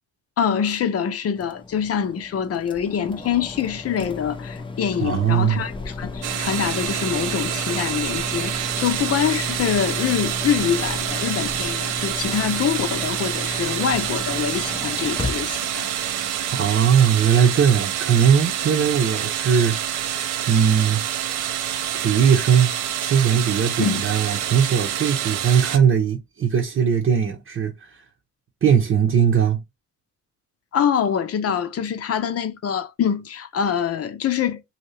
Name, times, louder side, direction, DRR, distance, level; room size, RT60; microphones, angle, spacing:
voice 1, 0.4-15.9 23.8-24.0 30.7-34.6, left 8 dB, 50° left, 0.7 m, -25 dB
sound 1, 1.3-16.5, left 3 dB, 15° left, 0.6 m, -34 dB
voice 2, 5.0-5.6 16.5-20.1 20.5-21.0 21.9-22.7 23.0-28.0 28.6-29.6, right 7 dB, 45° right, 0.8 m, -19 dB
sound 2, 6.2-25.8, right 10 dB, 85° right, 0.6 m, -27 dB
2.9 x 2.8 x 3.1 m
cardioid pair, 90°, 30 cm